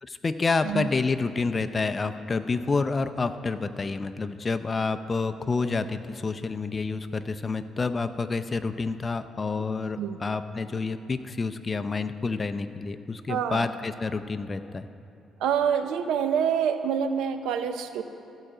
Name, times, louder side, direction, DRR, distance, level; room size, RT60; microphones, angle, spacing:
voice 1, 0.0-14.9, left 4 dB, 30° left, 10 dB, 0.5 m, -28 dB
voice 2, 13.3-13.7 15.4-18.0, right 8 dB, 90° right, 9 dB, 0.6 m, -26 dB
15.0 x 4.9 x 7.8 m, 2.5 s
cardioid pair, 90°, 0 cm